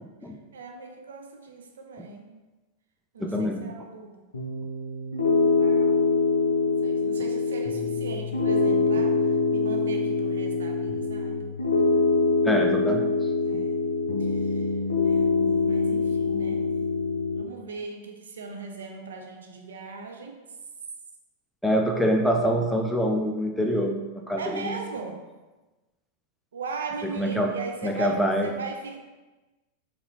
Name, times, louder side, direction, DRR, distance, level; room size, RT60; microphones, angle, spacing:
voice 1, 0.5-2.3 3.1-4.3 5.5-6.1 6.6-11.5 13.4-13.9 14.2-14.7 15.0-16.7 17.3-20.4 24.4-25.2 26.5-29.0, right 4 dB, 65° right, 3 dB, 0.4 m, -39 dB
voice 2, 3.2-3.7 12.4-13.1 21.6-24.8 27.2-27.5 27.8-28.5, equal, ahead, 1 dB, 0.4 m, -25 dB
Piano, 4.3-17.4, left 4 dB, 70° left, 0.5 m, -24 dB
4.0 x 2.6 x 2.7 m, 1.2 s
figure-of-eight pair, 90°, 0 cm